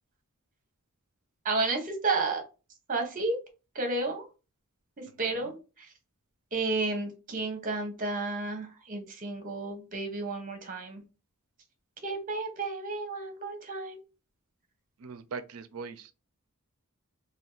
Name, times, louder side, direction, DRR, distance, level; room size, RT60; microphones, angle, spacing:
voice 1, 1.4-2.4 2.9-3.4 3.7-4.3 5.2-5.9 6.5-11.0 12.0-14.0, right 3 dB, 40° right, 0.8 m, -32 dB
voice 2, 5.1-5.5 15.0-16.1, right 5 dB, 70° right, 0.4 m, -41 dB
2.6 x 2.3 x 3.8 m
head